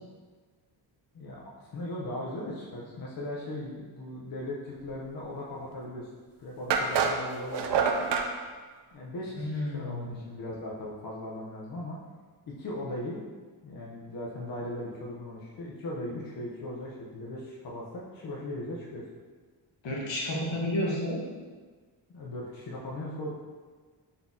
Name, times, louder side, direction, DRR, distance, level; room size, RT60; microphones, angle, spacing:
voice 1, 1.1-6.1 6.4-7.8 8.9-12.0 12.5-13.2 13.6-19.1 22.1-23.3, left 1 dB, 50° left, -4 dB, 0.7 m, -38 dB
sound 1, 5.9-6.0 6.7-8.3, right 5 dB, 70° right, 0.5 m, -27 dB
voice 2, 9.4-10.2 19.8-21.3, left 1 dB, 75° left, -3 dB, 1.1 m, -31 dB
4.1 x 2.8 x 3.5 m, 1.4 s
wide cardioid pair, 125°, 45 cm